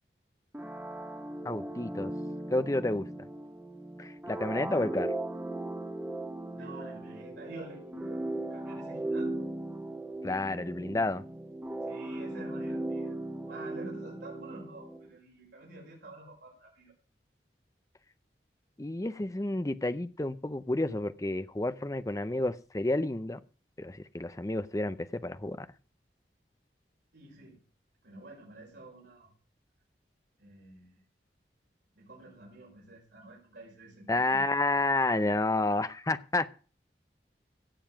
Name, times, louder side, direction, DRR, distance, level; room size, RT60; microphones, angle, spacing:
sound 1, 0.5-15.1, right 1 dB, 10° right, 1.2 m, -38 dB
voice 1, 1.4-2.1 2.5-3.3 4.0-5.1 10.2-11.2 18.8-23.4 23.8-25.7 34.1-36.5, left 2 dB, 20° left, 13 dB, 0.6 m, -30 dB
voice 2, 6.5-9.4 11.8-13.2 13.5-16.9 27.1-27.6 28.0-29.3 30.4-30.9 32.0-34.4, right 2 dB, 85° right, -3 dB, 5.2 m, -49 dB
16.5 x 7.0 x 5.9 m, 0.38 s
head